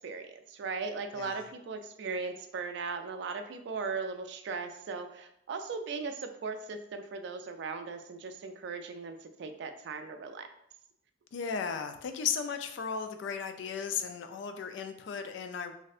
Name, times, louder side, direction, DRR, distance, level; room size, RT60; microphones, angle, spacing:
voice 1, 0.0-10.5, right 4 dB, 65° right, 7 dB, 0.3 m, -38 dB
voice 2, 1.1-1.5 11.3-15.8, left 6 dB, 70° left, 8 dB, 0.3 m, -35 dB
3.2 x 2.6 x 2.4 m, 0.75 s
head